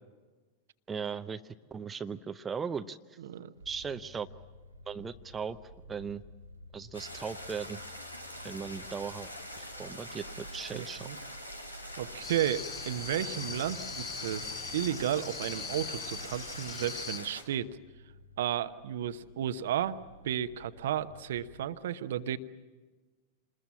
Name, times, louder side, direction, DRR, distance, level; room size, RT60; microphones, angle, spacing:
voice 1, 0.9-3.2 3.7-4.3 4.9-5.6 5.9-6.2 6.7-7.8 8.4-11.1, right 6 dB, 15° right, 9 dB, 0.8 m, -38 dB
voice 2, 3.2-3.5 10.7-11.2 12.0-17.8 18.4-20.0 20.2-22.4, right 10 dB, 60° right, 11 dB, 1.0 m, -33 dB
sound 1, 3.5-21.6, equal, 85° right, 1.3 m, -53 dB
sound 2, 6.9-17.4, equal, 85° left, 2.4 m, -44 dB
sound 3, 12.2-17.2, left 6 dB, 30° left, 2.0 m, -41 dB
27.0 x 21.0 x 7.5 m, 1.3 s
figure-of-eight pair, 90°, 0 cm